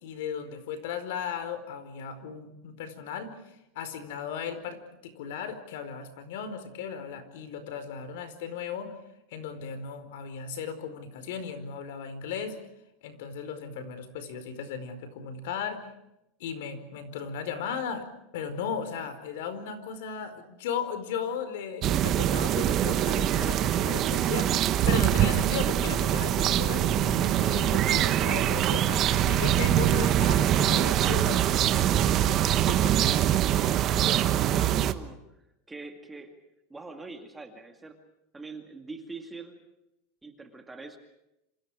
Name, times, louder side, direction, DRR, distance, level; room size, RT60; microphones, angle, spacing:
voice 1, 0.0-8.9 9.3-12.6 13.0-15.9 16.4-18.1 18.3-24.6 24.9-33.4 34.6-34.7, left 7 dB, 65° left, 11 dB, 4.7 m, -36 dB
sound 1, 21.8-34.9, right 11 dB, 30° right, 1.1 m, -24 dB
voice 2, 33.2-35.2 35.7-36.3 36.7-38.0 38.3-39.5 40.2-41.0, right 3 dB, 10° right, 5 dB, 2.2 m, -44 dB
28.5 x 27.0 x 5.0 m, 0.86 s
supercardioid pair, 175°, 0 cm